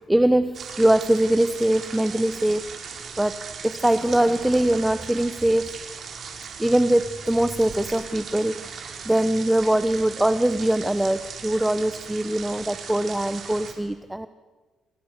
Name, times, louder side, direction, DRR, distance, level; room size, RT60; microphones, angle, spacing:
voice 1, 0.1-2.7 3.2-5.7 6.6-8.7 9.0-14.3, right 1 dB, 10° right, 11 dB, 0.9 m, -22 dB
sound 1, 0.5-13.7, right 6 dB, 55° right, 5.2 m, -38 dB
28.5 x 28.5 x 6.7 m, 1.3 s
cardioid pair, 90°, 0 cm